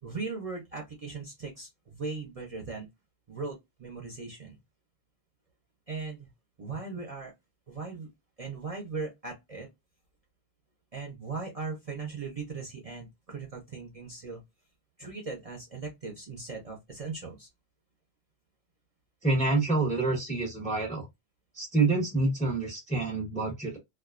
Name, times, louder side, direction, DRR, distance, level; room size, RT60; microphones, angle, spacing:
voice 1, 0.0-2.9 3.3-4.6 5.9-6.3 6.6-7.3 7.7-8.1 8.4-9.7 10.9-14.4 15.0-17.5, right 4 dB, 40° right, 0.6 m, -38 dB
voice 2, 19.2-21.1 21.5-23.8, right 3 dB, 10° left, 0.6 m, -27 dB
2.3 x 2.2 x 2.3 m
omnidirectional pair, 1.1 m